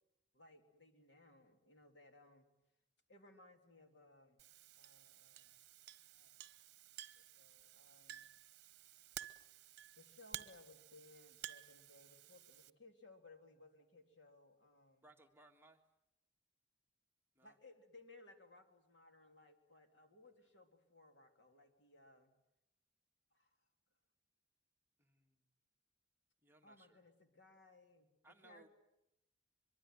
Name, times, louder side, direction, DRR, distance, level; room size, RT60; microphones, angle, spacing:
voice 1, 0.3-2.5 3.1-5.6 6.1-6.4 7.1-8.3 10.0-15.1 17.4-22.3 23.3-23.6 26.6-28.7, left 2 dB, 65° left, 5 dB, 3.2 m, -63 dB
Chink clink, 4.4-12.7, right 11 dB, 60° right, 1.0 m, -54 dB
voice 2, 15.0-15.8 17.3-17.6 25.0-25.5 26.4-27.0 28.2-28.7, right 2 dB, 10° right, 3 dB, 1.6 m, -65 dB
23.5 x 23.5 x 9.3 m, 0.88 s
head